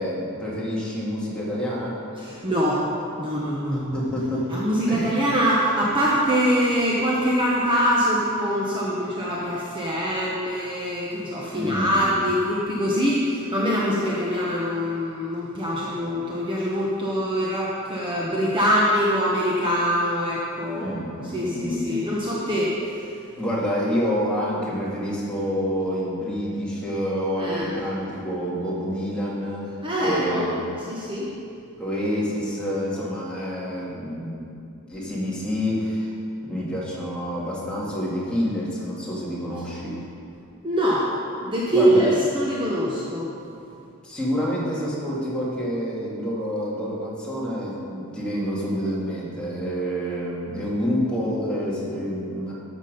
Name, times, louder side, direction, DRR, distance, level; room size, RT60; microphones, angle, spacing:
voice 1, 0.0-2.0 3.9-4.5 4.9-5.3 11.5-12.0 20.8-21.8 23.3-29.7 30.0-30.6 31.8-34.5 34.9-36.1 36.4-40.0 41.7-42.2 44.0-52.5, equal, 5° left, -7 dB, 2.2 m, -27 dB
voice 2, 2.2-2.8 3.2-3.9 4.5-22.7 27.4-27.7 29.8-30.5 30.9-31.3 40.6-41.1 41.4-43.3, equal, 20° right, -6 dB, 1.2 m, -23 dB
12.5 x 7.3 x 5.2 m, 2.5 s
head